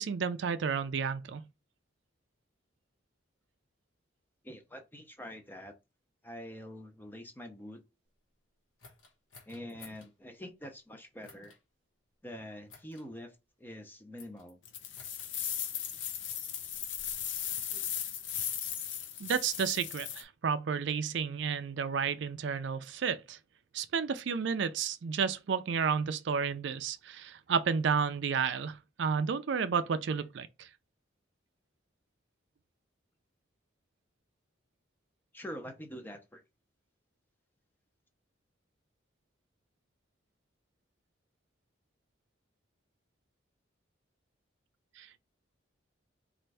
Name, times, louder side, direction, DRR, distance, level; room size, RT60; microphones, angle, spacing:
voice 1, 0.0-1.4 19.2-23.4 23.7-30.7 45.0-45.2, right 6 dB, 65° right, 0.4 m, -31 dB
voice 2, 4.4-5.7 6.2-7.8 9.5-11.6 12.2-14.6 35.3-36.4, equal, 10° left, 0.6 m, -45 dB
sound 1, 8.8-10.1 11.2-11.6 12.7-13.1 14.2-14.5 14.9-15.6 16.5-17.9, left 4 dB, 85° left, 1.2 m, -56 dB
sound 2, 14.7-20.2, left 9 dB, 70° left, 0.7 m, -37 dB
4.3 x 2.5 x 3.3 m
head